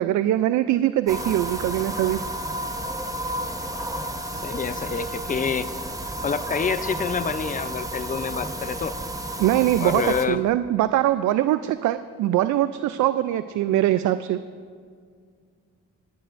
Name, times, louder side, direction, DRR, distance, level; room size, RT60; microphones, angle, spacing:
voice 1, 0.0-2.2 9.4-14.4, right 13 dB, 75° right, 12 dB, 0.4 m, -22 dB
sound 1, 1.1-10.3, right 1 dB, 10° right, 0.9 m, -32 dB
voice 2, 4.4-5.7 6.2-9.0 9.8-10.4, left 6 dB, 25° left, 13 dB, 0.5 m, -27 dB
27.0 x 10.0 x 2.6 m, 2.1 s
cardioid pair, 90°, 30 cm